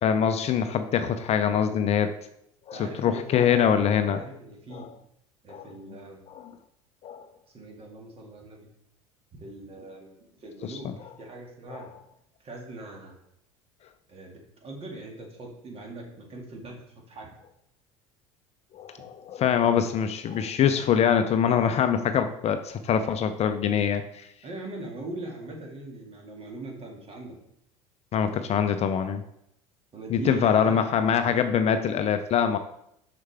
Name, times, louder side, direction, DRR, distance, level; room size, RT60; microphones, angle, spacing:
voice 1, 0.0-2.1 2.7-4.2 4.7-4.9 5.5-5.7 6.3-6.6 7.0-7.3 10.6-10.9 11.7-11.9 18.7-24.3 28.1-29.2 30.1-32.6, left 8 dB, 40° left, 9 dB, 0.5 m, -24 dB
voice 2, 2.7-4.9 5.4-6.2 7.5-8.7 9.3-11.9 12.4-13.2 14.1-16.8 17.1-17.3 24.4-27.4 29.9-30.8, right 2 dB, 35° right, 0 dB, 2.1 m, -41 dB
6.3 x 5.9 x 3.4 m, 0.75 s
hypercardioid pair, 75°, 17 cm